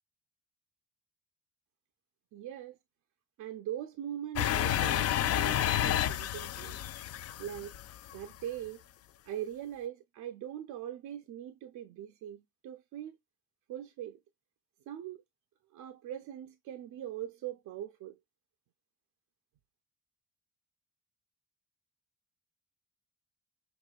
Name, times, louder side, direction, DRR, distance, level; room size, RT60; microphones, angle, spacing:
voice 1, 2.3-2.8 3.4-6.8 7.4-7.8 8.1-8.8 9.2-13.2 13.7-14.2 14.9-15.2 15.7-18.2, right 11 dB, 75° right, 0.6 m, -41 dB
sound 1, 4.4-8.3, left 11 dB, 55° left, 0.4 m, -30 dB
6.1 x 2.6 x 2.3 m
cardioid pair, 90°, 30 cm